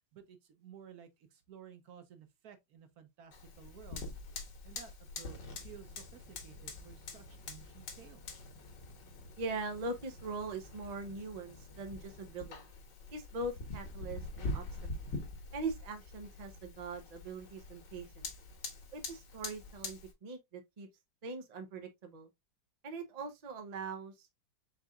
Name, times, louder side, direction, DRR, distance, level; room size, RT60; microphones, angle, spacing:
voice 1, 0.0-4.1 4.6-8.5, right 8 dB, 60° right, 1.1 m, -55 dB
Fire, 3.3-20.1, left 3 dB, 70° left, 1.8 m, -45 dB
voice 2, 9.4-12.7 13.1-14.7 15.0-15.2 15.5-18.1 18.9-20.9 21.2-22.3 22.8-24.3, right 3 dB, 90° right, 0.3 m, -41 dB
4.6 x 3.9 x 2.3 m
omnidirectional pair, 2.0 m